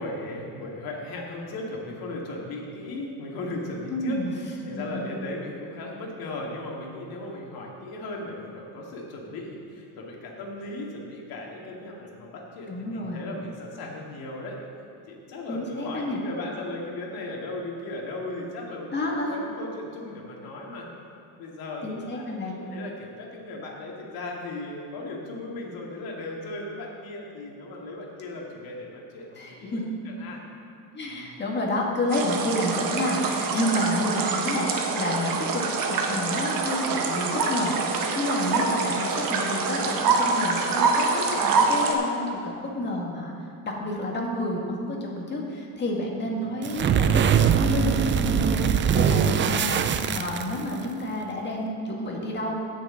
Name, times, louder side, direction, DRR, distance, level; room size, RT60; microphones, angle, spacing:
voice 1, 0.0-4.2 4.6-14.6 15.1-20.9 21.4-30.4 31.1-31.6 46.4-46.6, left 2 dB, 65° left, -2 dB, 2.3 m, -37 dB
voice 2, 3.9-4.4 4.7-5.0 12.7-13.2 15.5-16.2 18.9-19.4 21.8-22.6 29.4-29.9 30.9-41.1 41.4-43.3 43.6-49.8 50.1-52.5, left 1 dB, 30° left, -1 dB, 2.1 m, -29 dB
sound 1, 32.1-41.9, right 4 dB, 60° right, 1.3 m, -25 dB
sound 2, 46.6-50.8, right 7 dB, 30° right, 0.4 m, -22 dB
17.0 x 6.6 x 3.9 m, 2.6 s
cardioid pair, 125°, 38 cm